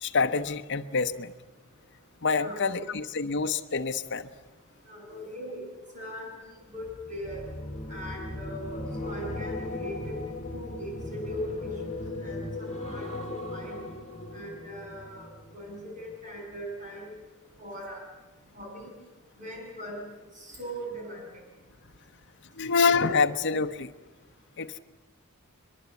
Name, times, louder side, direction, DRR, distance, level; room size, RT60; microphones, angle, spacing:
voice 1, 0.0-1.3 2.2-4.3 22.6-23.9 24.6-24.8, left 4 dB, 55° left, 7 dB, 0.9 m, -26 dB
voice 2, 2.3-2.8 4.9-5.6 5.9-7.4 7.9-10.2 10.5-13.8 14.3-15.3 15.5-17.1 17.6-18.0 18.5-18.9 19.4-20.0 20.4-21.2, equal, 35° right, 0 dB, 7.9 m, -39 dB
sound 1, 6.8-16.2 16.5-16.8, left 2 dB, 30° left, 2.5 m, -38 dB
22.5 x 22.5 x 8.3 m, 1.2 s
head